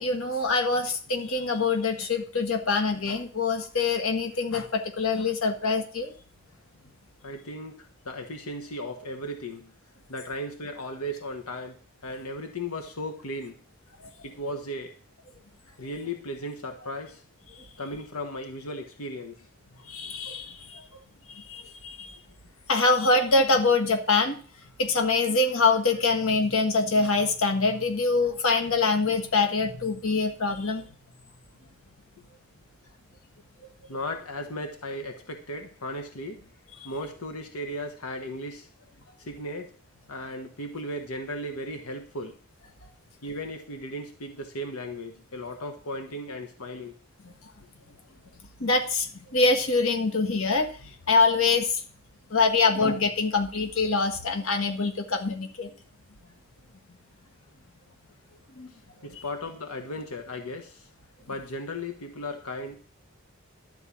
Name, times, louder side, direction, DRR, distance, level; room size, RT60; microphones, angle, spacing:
voice 1, 0.0-6.1 17.6-17.7 19.9-20.8 21.3-22.2 22.7-24.4 24.8-30.8 48.6-51.8 52.3-55.7 58.6-58.7 59.1-59.2, left 3 dB, 70° left, 4 dB, 1.6 m, -24 dB
voice 2, 7.2-9.7 10.1-11.8 12.0-13.6 14.2-14.9 15.8-17.2 17.8-19.5 33.9-36.5 36.8-38.7 39.2-39.7 40.1-42.3 43.2-46.9 58.7-60.9 61.3-62.7, left 1 dB, 90° left, 4 dB, 1.3 m, -36 dB
12.0 x 4.5 x 8.4 m, 0.40 s
head